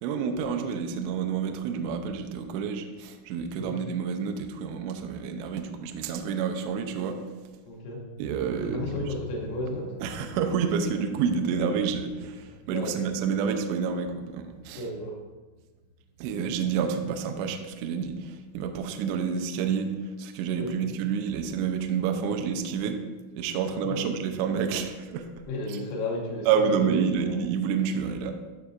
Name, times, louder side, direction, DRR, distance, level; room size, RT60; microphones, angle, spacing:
voice 1, 0.0-7.2 8.2-8.9 10.0-14.8 16.2-19.9 20.2-23.0 23.4-25.3 26.5-28.3, right 6 dB, 85° right, 6 dB, 2.5 m, -29 dB
voice 2, 7.6-8.1 8.5-10.0 12.7-13.1 14.8-15.2 17.0-17.1 20.5-20.9 23.8-24.1 25.5-26.5 26.8-27.4, left 1 dB, 75° left, -2 dB, 3.1 m, -34 dB
sound 1, 8.0-18.8 19.0-19.1, left 1 dB, 45° right, 0.9 m, -49 dB
12.0 x 5.7 x 2.5 m, 1.3 s
omnidirectional pair, 5.5 m